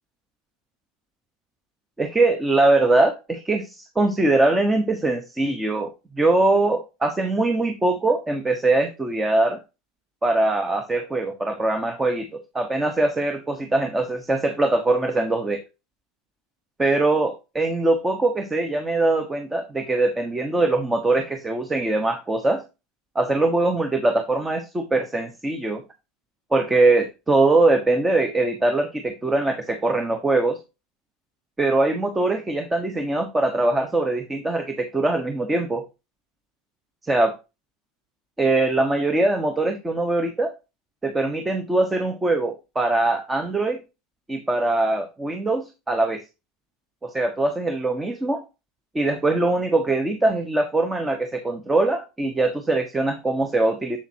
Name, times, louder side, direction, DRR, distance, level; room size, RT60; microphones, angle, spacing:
voice 1, 2.0-9.6 10.2-15.6 16.8-22.6 23.1-25.8 26.5-30.6 31.6-35.8 37.1-37.3 38.4-40.5 41.0-43.8 44.3-46.2 47.0-48.4 48.9-54.0, right 2 dB, 15° right, 7 dB, 1.0 m, -22 dB
7.3 x 7.0 x 2.8 m, 0.26 s
supercardioid pair, 115°, 0 cm